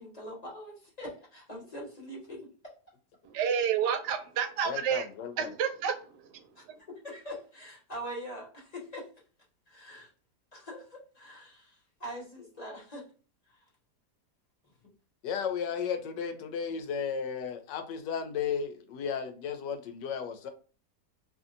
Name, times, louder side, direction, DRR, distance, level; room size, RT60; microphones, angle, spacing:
voice 1, 0.0-2.5 6.6-6.7 7.0-9.1 9.7-10.1 10.5-13.0, equal, 25° left, -3 dB, 1.2 m, -43 dB
voice 2, 3.3-5.1 5.4-6.4, right 8 dB, 80° right, 6 dB, 1.2 m, -30 dB
voice 3, 4.6-5.5 15.2-20.5, left 7 dB, 85° left, 7 dB, 1.3 m, -34 dB
3.0 x 2.7 x 2.4 m, 0.39 s
omnidirectional pair, 1.8 m